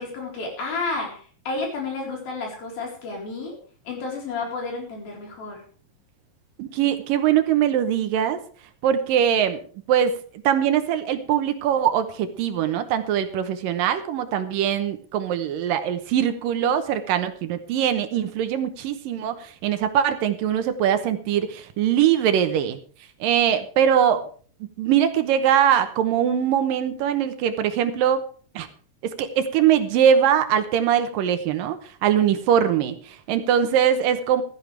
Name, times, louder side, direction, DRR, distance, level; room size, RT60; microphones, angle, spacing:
voice 1, 0.0-3.6 3.9-5.6, left 3 dB, 75° left, 0 dB, 6.0 m, -31 dB
voice 2, 6.6-8.4 8.8-9.6 9.9-10.2 10.4-22.8 23.2-24.2 24.8-28.3 28.6-28.7 29.0-34.4, right 9 dB, 75° right, 9 dB, 2.5 m, -22 dB
16.0 x 13.0 x 3.4 m, 0.42 s
omnidirectional pair, 4.2 m